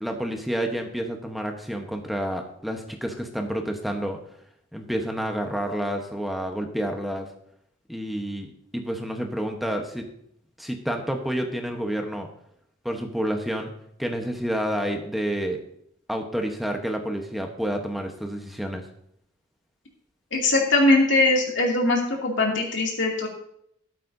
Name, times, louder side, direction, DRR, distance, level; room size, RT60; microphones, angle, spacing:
voice 1, 0.0-4.2 4.7-7.3 7.9-10.1 10.6-12.3 12.8-13.7 14.0-15.6 16.1-18.9, equal, ahead, 3 dB, 1.0 m, -29 dB
voice 2, 20.3-23.3, left 2 dB, 60° left, 0 dB, 2.7 m, -21 dB
13.5 x 12.0 x 2.7 m, 0.71 s
head